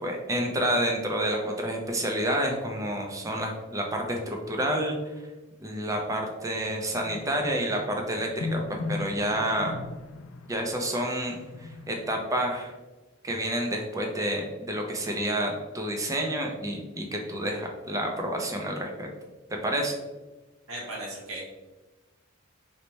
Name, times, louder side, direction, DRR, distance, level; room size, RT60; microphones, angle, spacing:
voice 1, 0.0-5.0 5.6-9.8 10.5-12.7 13.2-19.1 19.6-19.9, right 1 dB, 15° right, 2 dB, 0.4 m, -29 dB
sound 1, 7.0-12.5, left 3 dB, 85° left, 0.4 m, -38 dB
voice 2, 20.7-21.5, right 1 dB, 85° right, -3 dB, 1.0 m, -37 dB
3.1 x 2.1 x 4.0 m, 1.2 s
head